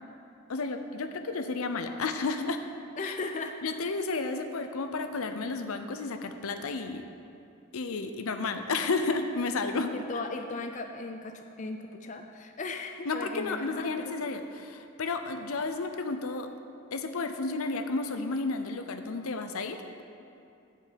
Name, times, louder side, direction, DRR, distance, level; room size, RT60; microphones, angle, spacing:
voice 1, 0.5-2.6 3.0-3.1 3.6-7.0 7.7-9.9 13.1-16.5 16.9-20.0, left 3 dB, 80° left, 8 dB, 0.6 m, -32 dB
voice 2, 3.0-3.6 9.9-14.2, left 3 dB, 35° left, 5 dB, 0.4 m, -37 dB
8.4 x 5.3 x 7.5 m, 2.7 s
head